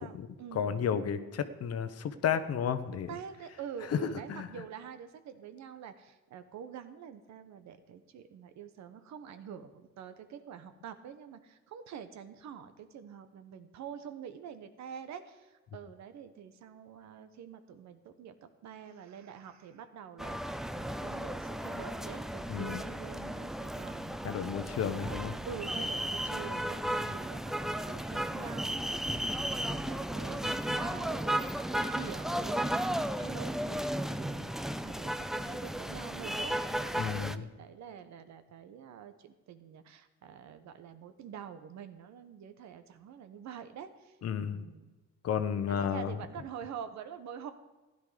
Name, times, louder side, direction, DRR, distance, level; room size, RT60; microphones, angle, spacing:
voice 1, 0.0-0.9 3.1-34.5 34.8-44.2 44.4-44.9 45.7-47.5, right 8 dB, 70° right, 10 dB, 1.1 m, -46 dB
voice 2, 0.5-3.1 3.9-4.0 4.3-4.5 22.5-22.8 24.2-25.3 37.0-37.5 44.2-44.7 45.2-46.1, left 8 dB, 55° left, 11 dB, 1.0 m, -32 dB
sound 1, 20.2-37.4, right 1 dB, ahead, 0.4 m, -34 dB
15.0 x 10.5 x 5.0 m, 1.2 s
cardioid pair, 100°, 29 cm